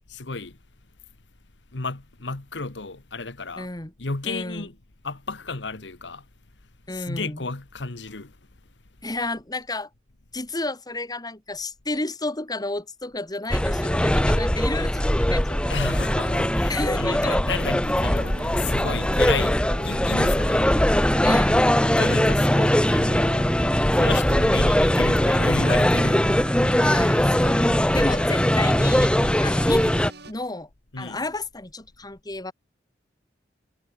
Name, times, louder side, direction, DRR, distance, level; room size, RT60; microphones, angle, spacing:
voice 1, 0.1-0.6 1.7-3.7 4.0-4.8 5.0-6.3 6.9-8.4 15.7-20.7 21.9-23.5 23.9-26.4 30.9-31.2, left 4 dB, 90° left, 1.5 m, -33 dB
voice 2, 3.6-3.9 4.2-4.7 6.9-7.4 9.0-9.9 10.3-15.7 16.7-17.4 21.2-21.6 26.8-29.1 29.4-30.0 30.3-30.7 31.0-32.5, left 2 dB, 20° left, 2.6 m, -31 dB
sound 1, 13.5-30.1, equal, 5° left, 1.0 m, -21 dB
sound 2, 18.0-30.3, right 2 dB, 65° right, 6.5 m, -43 dB
head